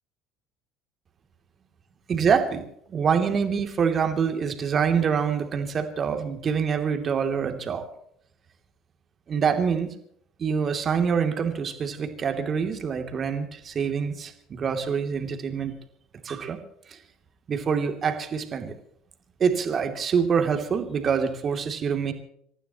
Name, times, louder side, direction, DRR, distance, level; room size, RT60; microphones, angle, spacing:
voice 1, 2.1-2.6 2.9-7.8 9.3-9.9 10.4-15.7 16.2-16.6 16.9-17.0 17.5-18.7 19.4-22.1, right 6 dB, 40° right, 6 dB, 2.9 m, -25 dB
27.5 x 14.5 x 3.1 m, 0.68 s
figure-of-eight pair, 65°, 0 cm